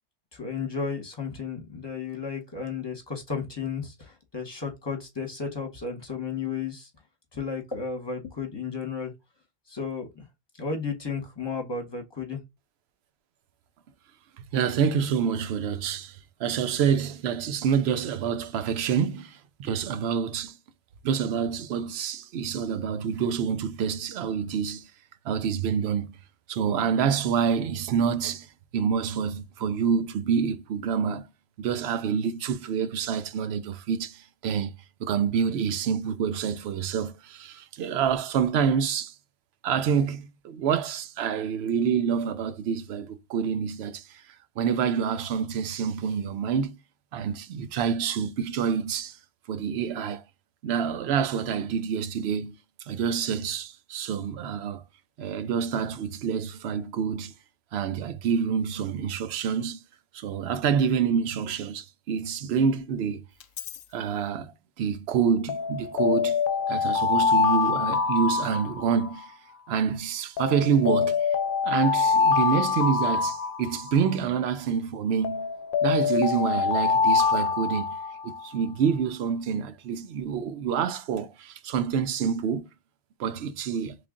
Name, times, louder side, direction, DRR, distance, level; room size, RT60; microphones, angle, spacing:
voice 1, 0.3-6.9 7.3-9.1 9.7-10.2 10.6-12.4, left 5 dB, 25° left, 1.0 m, -33 dB
voice 2, 14.5-20.6 21.0-24.9 25.2-26.2 26.5-28.5 28.7-31.3 31.6-34.7 35.0-39.1 39.6-44.2 44.6-46.8 47.1-49.2 49.5-50.2 50.6-52.6 52.9-54.8 55.2-57.3 57.7-59.8 60.1-63.2 63.9-66.4 66.7-69.3 69.7-71.3 71.6-75.5 75.8-77.9 78.2-82.7 83.2-84.0, right 7 dB, 80° right, 0.8 m, -27 dB
Alarm, 63.4-63.8 65.5-69.2 70.4-74.1 75.2-78.5, left 5 dB, 65° left, 0.7 m, -25 dB
3.3 x 2.4 x 3.6 m
omnidirectional pair, 1.1 m